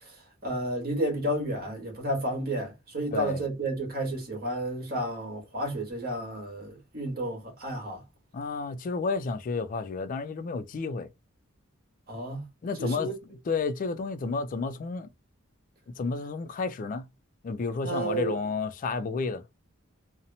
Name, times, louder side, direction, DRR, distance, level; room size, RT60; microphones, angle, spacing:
voice 1, 0.4-8.0 12.1-12.4 12.8-13.1 17.8-18.3, right 1 dB, 50° right, 1.1 m, -31 dB
voice 2, 3.1-3.4 8.3-11.1 12.6-15.1 16.0-17.1 17.4-19.4, left 4 dB, 40° left, 0.3 m, -31 dB
2.8 x 2.0 x 2.6 m
head